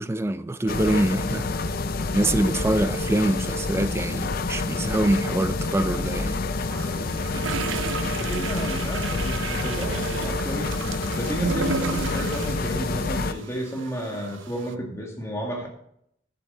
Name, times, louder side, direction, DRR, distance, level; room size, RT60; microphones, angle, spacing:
voice 1, 0.0-1.5 2.1-6.4, right 1 dB, 15° right, 0.4 m, -24 dB
sound 1, 0.7-13.3, left 3 dB, 50° left, 0.5 m, -28 dB
sound 2, 6.7-14.7, right 5 dB, 75° right, 0.6 m, -34 dB
voice 2, 8.2-10.7 11.2-15.7, right 1 dB, 15° left, 1.9 m, -31 dB
11.0 x 7.1 x 4.2 m
head